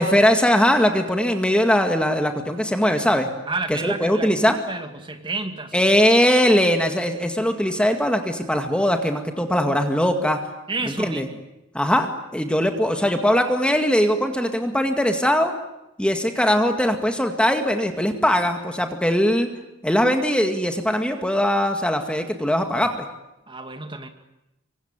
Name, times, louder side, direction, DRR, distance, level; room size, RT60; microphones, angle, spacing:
voice 1, 0.0-3.3 3.7-4.6 5.7-10.4 10.8-11.3 11.7-15.5 16.0-19.5 19.8-23.1, equal, 5° left, 5 dB, 2.0 m, -20 dB
voice 2, 3.5-5.8 10.7-11.4 23.5-24.1, right 3 dB, 25° right, 6 dB, 2.3 m, -31 dB
26.0 x 24.5 x 8.9 m, 0.90 s
head